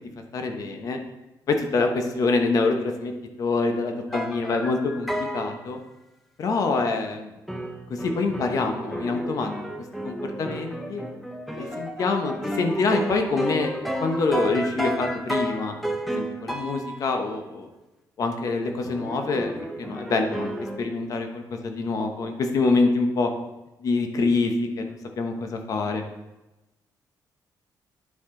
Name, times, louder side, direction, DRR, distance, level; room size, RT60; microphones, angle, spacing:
voice 1, 0.3-1.0 1.5-3.1 3.4-5.8 6.4-7.3 7.9-9.5 10.0-11.0 11.6-15.7 16.1-17.7 18.2-19.5 19.8-23.3 23.8-26.0, left 3 dB, 50° left, 5 dB, 1.0 m, -25 dB
sound 1, 4.1-5.6 7.5-17.1 18.8-20.8, right 1 dB, ahead, 0.6 m, -32 dB
9.3 x 5.7 x 3.8 m, 1.0 s
cardioid pair, 165°, 8 cm